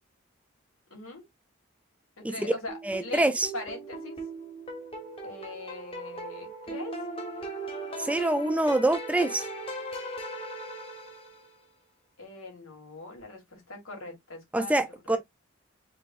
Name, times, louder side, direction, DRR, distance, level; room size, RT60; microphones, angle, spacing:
voice 1, 0.9-1.2 2.2-4.2 5.2-6.9 12.2-14.7 15.1-15.2, left 2 dB, 90° left, 3.0 m, -41 dB
sound 1, 2.7-11.6, right 1 dB, 25° left, 1.3 m, -39 dB
voice 2, 2.8-3.5 8.0-9.5 14.5-15.2, right 1 dB, 5° right, 0.3 m, -25 dB
5.3 x 3.9 x 2.5 m
head